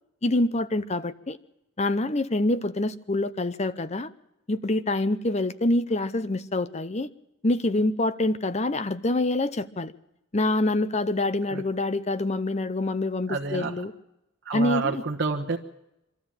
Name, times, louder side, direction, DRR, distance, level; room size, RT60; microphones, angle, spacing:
voice 1, 0.2-1.4 1.8-4.1 4.5-7.1 7.4-9.9 10.3-13.9 14.5-15.0, left 2 dB, 30° left, 14 dB, 0.7 m, -26 dB
voice 2, 13.3-13.7 14.4-15.6, right 4 dB, 60° right, 2 dB, 1.3 m, -28 dB
24.5 x 13.5 x 8.9 m, 0.90 s
head